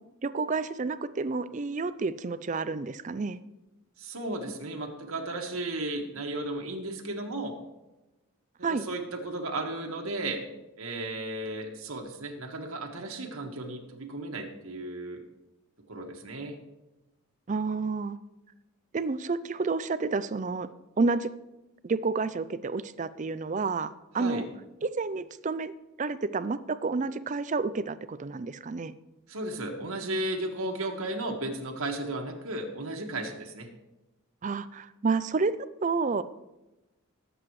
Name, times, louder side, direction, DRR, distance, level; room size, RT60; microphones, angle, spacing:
voice 1, 0.2-3.4 8.6-8.9 17.5-18.2 18.9-20.7 21.0-21.3 21.8-24.5 24.8-28.9 34.4-36.2, right 4 dB, 35° right, 14 dB, 0.4 m, -30 dB
voice 2, 4.0-7.6 8.6-10.4 10.8-15.2 15.9-16.6 24.2-24.5 29.3-33.7, right 2 dB, 75° right, 1 dB, 1.7 m, -34 dB
19.5 x 7.9 x 3.2 m, 1.0 s
head